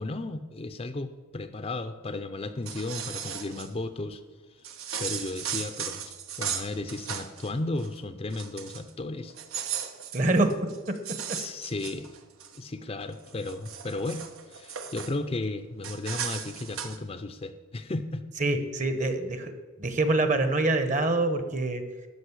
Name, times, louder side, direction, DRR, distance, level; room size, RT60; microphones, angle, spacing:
voice 1, 0.0-4.2 5.0-9.3 11.3-12.1 12.5-18.3, left 2 dB, 30° left, 9 dB, 0.5 m, -34 dB
sound 1, 2.5-3.7 4.6-7.5 7.8-8.0 8.3-8.9 9.3-12.6 13.1-15.1 15.8-17.0, right 8 dB, 85° right, 1.1 m, -36 dB
voice 2, 10.1-10.5 10.9-11.4 18.4-19.5 19.8-21.8, right 2 dB, 35° right, 8 dB, 1.1 m, -25 dB
13.0 x 5.3 x 8.1 m, 1.4 s
head